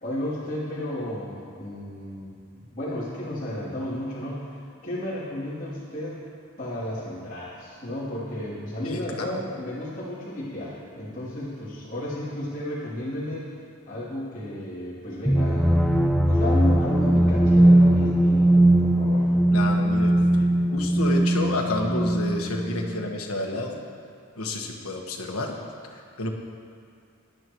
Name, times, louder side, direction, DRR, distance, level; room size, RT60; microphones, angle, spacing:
voice 1, 0.0-4.5 4.8-6.2 6.6-13.5 13.9-15.9 16.3-19.3, left 1 dB, 35° left, -11 dB, 3.2 m, -33 dB
voice 2, 8.8-9.4 19.5-20.4 20.7-23.8 24.3-25.6 25.9-26.3, left 2 dB, 85° left, 1 dB, 1.5 m, -30 dB
sound 1, 15.3-22.9, right 1 dB, ahead, 0.4 m, -19 dB
19.0 x 11.5 x 3.1 m, 2.3 s
head